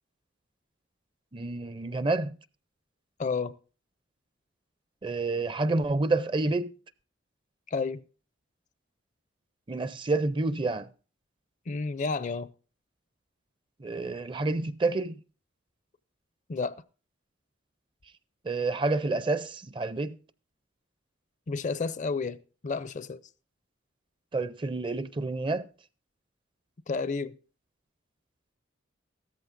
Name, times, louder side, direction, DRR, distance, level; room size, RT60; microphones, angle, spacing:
voice 1, 1.3-2.4 5.0-6.7 9.7-10.9 13.8-15.2 18.4-20.1 24.3-25.7, right 3 dB, 25° right, 0.5 m, -28 dB
voice 2, 3.2-3.5 7.7-8.0 11.7-12.5 16.5-16.8 21.5-22.4 22.6-23.2 26.9-27.4, left 4 dB, 40° left, 0.5 m, -31 dB
15.5 x 13.5 x 2.5 m
head